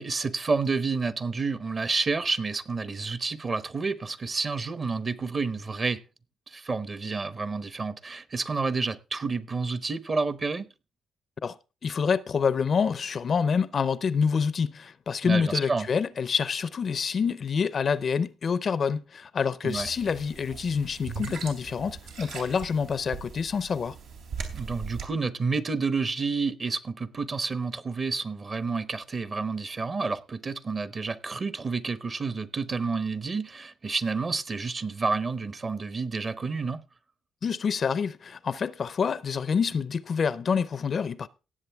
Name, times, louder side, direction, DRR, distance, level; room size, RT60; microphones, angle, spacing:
voice 1, 0.0-6.0 6.5-10.7 15.2-15.9 19.6-19.9 24.5-36.8, right 4 dB, 35° right, 0.9 m, -29 dB
voice 2, 11.4-24.0 37.4-41.3, left 6 dB, 45° left, 0.5 m, -27 dB
sound 1, 19.7-25.1, right 5 dB, 85° right, 2.9 m, -40 dB
17.5 x 7.6 x 3.4 m
cardioid pair, 90°, 0 cm